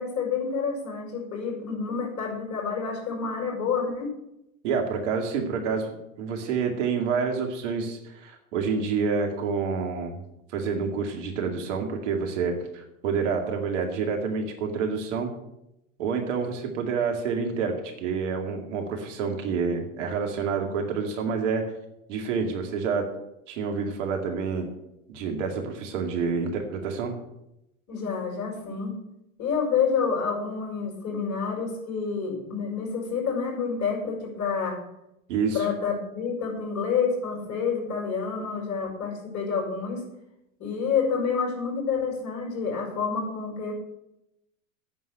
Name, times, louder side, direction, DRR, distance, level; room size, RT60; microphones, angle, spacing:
voice 1, 0.0-4.1 27.9-29.0 29.4-34.8 35.5-40.0 40.6-43.7, left 5 dB, 40° left, -1 dB, 5.5 m, -28 dB
voice 2, 4.6-10.2 10.5-15.3 16.0-21.7 22.1-23.1 23.5-24.7 25.1-27.1 35.3-35.7, right 5 dB, 60° right, 3 dB, 2.4 m, -28 dB
9.5 x 7.0 x 8.9 m, 0.86 s
figure-of-eight pair, 90°, 42 cm